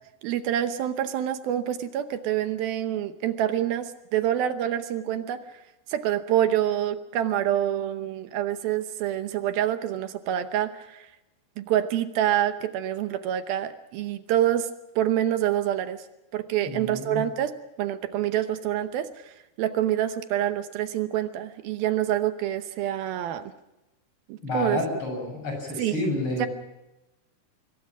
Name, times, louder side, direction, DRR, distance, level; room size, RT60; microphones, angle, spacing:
voice 1, 0.2-5.4 5.9-11.1 11.6-14.7 15.0-16.0 16.3-17.5 17.8-23.5 24.3-24.8 25.8-26.0 26.4-26.5, right 11 dB, 75° right, 10 dB, 2.6 m, -26 dB
voice 2, 16.6-17.3 24.4-26.5, left 1 dB, 30° left, 3 dB, 7.8 m, -30 dB
26.0 x 22.0 x 6.0 m, 0.99 s
omnidirectional pair, 4.6 m